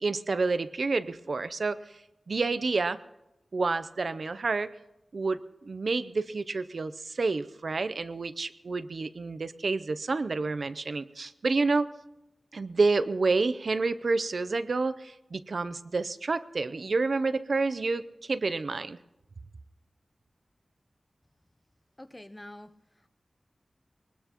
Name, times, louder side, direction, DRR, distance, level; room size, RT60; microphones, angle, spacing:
voice 1, 0.0-2.0 2.3-3.0 3.5-4.7 5.1-11.9 12.5-19.0, right 3 dB, 70° right, 12 dB, 0.5 m, -29 dB
voice 2, 22.0-23.1, left 1 dB, 20° left, 10 dB, 0.7 m, -47 dB
22.5 x 19.5 x 3.0 m, 0.92 s
wide cardioid pair, 95°, 0 cm